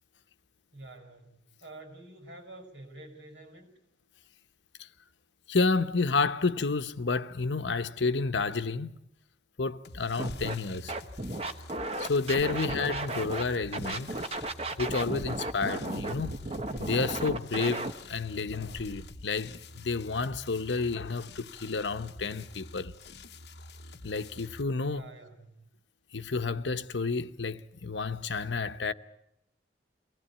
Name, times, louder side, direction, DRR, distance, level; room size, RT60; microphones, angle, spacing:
voice 1, 0.7-3.7 24.8-25.6, right 2 dB, 80° right, 5.4 m, -48 dB
voice 2, 5.5-8.9 9.6-10.9 12.0-14.2 14.8-16.4 16.8-22.9 24.0-25.1 26.1-28.9, left 4 dB, 90° left, 0.9 m, -30 dB
sound 1, 9.8-24.6, left 3 dB, 70° left, 1.0 m, -48 dB
Scratching (performance technique), 10.2-10.5 10.9-13.4 13.7-17.9, right 2 dB, 35° right, 1.1 m, -34 dB
23.5 x 17.5 x 8.6 m
head